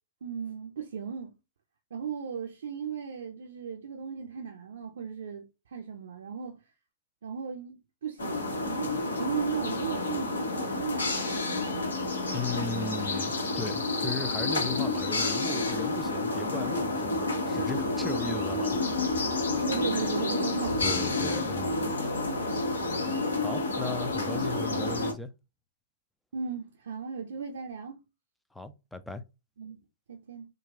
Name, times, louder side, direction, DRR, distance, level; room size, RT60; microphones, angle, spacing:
voice 1, 0.2-1.3 1.9-6.6 7.2-11.8 19.6-21.3 26.3-28.0 29.6-29.8 30.1-30.4, right 6 dB, 65° right, 0.6 m, -36 dB
sound 1, 8.2-25.1, left 2 dB, 75° left, 1.2 m, -29 dB
voice 2, 12.3-18.8 20.8-21.9 23.4-25.3 28.5-29.2, left 3 dB, 5° left, 0.5 m, -37 dB
3.9 x 2.3 x 3.6 m
figure-of-eight pair, 110°, 0 cm